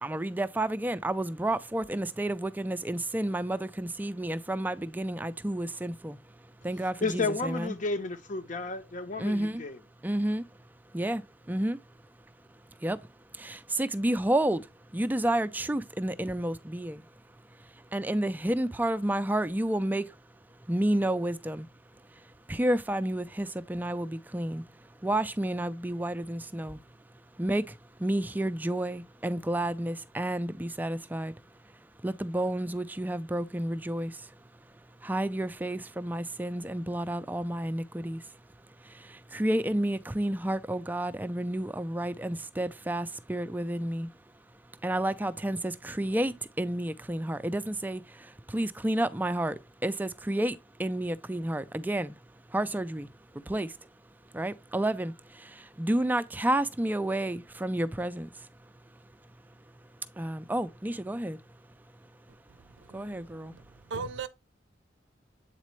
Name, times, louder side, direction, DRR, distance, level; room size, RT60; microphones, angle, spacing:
voice 1, 0.0-6.2 6.6-7.7 9.2-9.6 10.0-10.4 10.9-11.8 12.8-13.0 13.3-17.1 17.6-20.2 20.7-21.7 22.1-24.6 25.0-26.8 27.4-31.3 32.0-34.3 35.0-38.4 38.8-44.1 44.8-52.1 52.5-53.9 54.3-58.5 60.2-61.4 62.9-63.5, right 1 dB, 10° right, 0.3 m, -31 dB
voice 2, 7.0-9.8, left 3 dB, 45° left, 0.7 m, -32 dB
voice 3, 62.5-63.6 63.9-64.3, right 4 dB, 85° right, 0.5 m, -39 dB
8.2 x 4.2 x 3.0 m
head